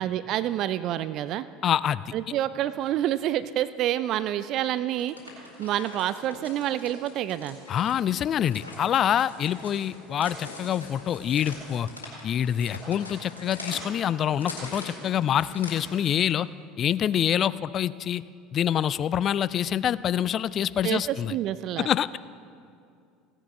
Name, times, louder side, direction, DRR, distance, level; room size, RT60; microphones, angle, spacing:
voice 1, 0.0-1.5 2.1-5.2 5.6-7.6 20.8-21.9, right 12 dB, 50° right, 15 dB, 0.3 m, -28 dB
voice 2, 1.6-2.1 7.7-11.9 12.2-16.5 16.8-18.2 18.5-21.4 21.8-22.2, left 10 dB, 40° left, 18 dB, 0.3 m, -26 dB
sound 1, 4.9-16.2, left 2 dB, 90° left, 1.9 m, -43 dB
16.0 x 9.8 x 4.2 m, 2.3 s
figure-of-eight pair, 70°, 0 cm